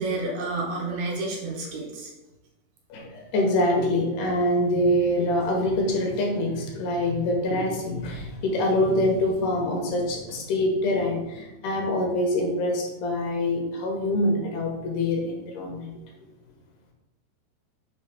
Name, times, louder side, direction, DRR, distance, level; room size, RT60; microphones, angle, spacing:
voice 1, 0.0-2.1, right 2 dB, 70° right, -3 dB, 2.7 m, -30 dB
voice 2, 2.9-15.9, left 1 dB, 75° left, 0 dB, 3.0 m, -25 dB
7.7 x 2.7 x 5.8 m, 1.0 s
omnidirectional pair, 4.9 m